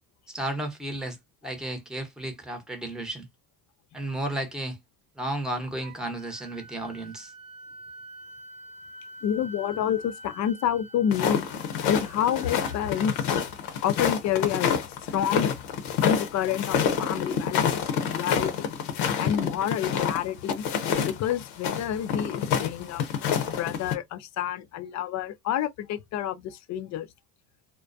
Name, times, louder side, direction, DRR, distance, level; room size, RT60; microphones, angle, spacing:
voice 1, 0.3-1.2 1.4-3.3 3.9-4.8 5.1-7.3, right 1 dB, ahead, 0.8 m, -33 dB
Wind instrument woodwind instrument, 5.8-13.6, equal, 60° right, 0.7 m, -46 dB
voice 2, 9.2-11.5 11.9-13.3 13.8-14.8 15.1-15.5 16.0-17.8 18.1-18.8 19.2-20.6 21.0-23.1 23.4-27.1, left 9 dB, 40° left, 0.5 m, -28 dB
sound 1, 11.1-23.9, left 7 dB, 70° left, 0.8 m, -28 dB
2.3 x 2.2 x 2.5 m
supercardioid pair, 85°, 42 cm